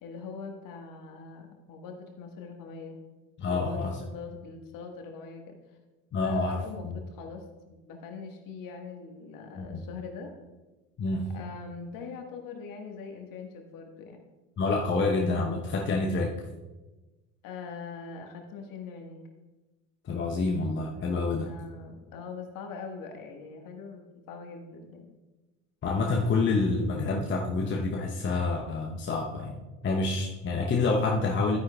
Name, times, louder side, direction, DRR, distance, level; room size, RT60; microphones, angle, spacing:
voice 1, 0.0-3.0 3.4-5.6 6.1-10.3 11.3-14.3 17.4-19.3 21.4-25.1, left 5 dB, 45° left, 4 dB, 1.6 m, -42 dB
voice 2, 3.4-3.9 6.1-7.0 9.5-9.8 11.0-11.3 14.6-16.3 20.0-21.5 25.8-29.6 29.8-31.6, left 3 dB, 25° left, 0 dB, 1.0 m, -27 dB
12.5 x 9.5 x 2.3 m, 1.2 s
figure-of-eight pair, 65°, 45 cm